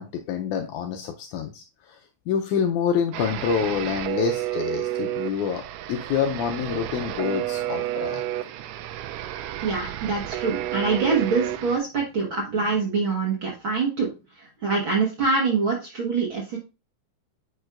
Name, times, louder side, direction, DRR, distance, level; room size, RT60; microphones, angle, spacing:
voice 1, 0.0-2.0 2.3-5.6 5.9-8.2, left 7 dB, 90° left, 1.7 m, -27 dB
sound 1, 3.1-11.8, right 13 dB, 80° right, 1.9 m, -31 dB
voice 2, 9.6-14.1 14.4-16.6, right 4 dB, 55° right, 1.5 m, -25 dB
9.3 x 5.4 x 2.4 m
omnidirectional pair, 4.2 m